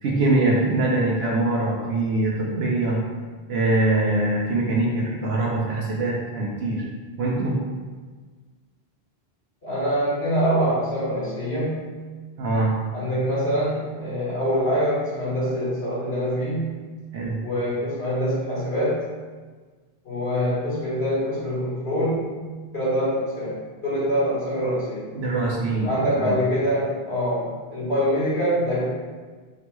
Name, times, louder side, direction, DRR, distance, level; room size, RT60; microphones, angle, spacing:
voice 1, 0.0-3.0 3.5-6.9 7.2-7.6 12.4-12.8 17.1-17.4 25.2-25.9 26.2-26.4, right 2 dB, 80° right, -3 dB, 0.9 m, -23 dB
voice 2, 9.6-11.9 12.9-16.8 17.4-19.0 20.1-22.3 22.7-25.1 25.8-28.9, equal, 85° left, -9 dB, 1.8 m, -24 dB
6.1 x 2.2 x 3.0 m, 1.4 s
omnidirectional pair, 1.0 m